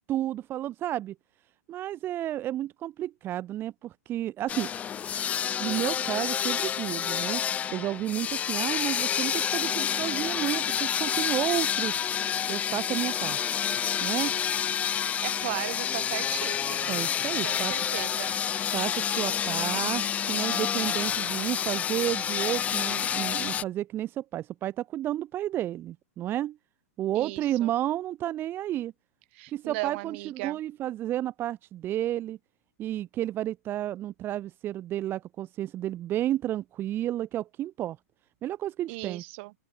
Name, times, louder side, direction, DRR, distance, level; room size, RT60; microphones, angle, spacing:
voice 1, 0.1-1.1 1.7-4.7 5.6-7.4 7.7-12.0 12.5-13.6 14.0-14.3 16.9-17.9 18.7-26.6 27.0-28.9 29.5-32.4 32.8-38.0 38.4-39.2, right 13 dB, 25° right, 1.2 m, -31 dB
sound 1, 4.5-23.6, left 9 dB, 15° left, 0.4 m, -29 dB
voice 2, 15.2-16.9 17.4-18.4 27.1-27.7 29.3-30.6 38.9-39.5, right 25 dB, 45° right, 2.7 m, -37 dB
open air
hypercardioid pair, 140°, 9 cm